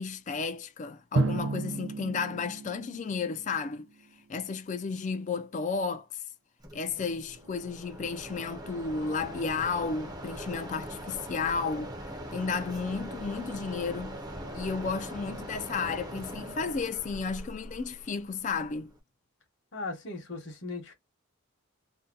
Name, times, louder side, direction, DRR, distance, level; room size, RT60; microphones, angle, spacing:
voice 1, 0.0-3.9 4.3-6.2 6.7-12.0 12.3-14.2 14.5-18.9, left 5 dB, 35° left, 0.3 m, -33 dB
Drum, 1.2-3.8, right 3 dB, 70° right, 0.5 m, -32 dB
Mechanisms, 6.6-19.0, equal, 20° right, 0.6 m, -42 dB
voice 2, 19.7-20.9, left 3 dB, 55° left, 1.0 m, -38 dB
2.7 x 2.1 x 3.7 m
head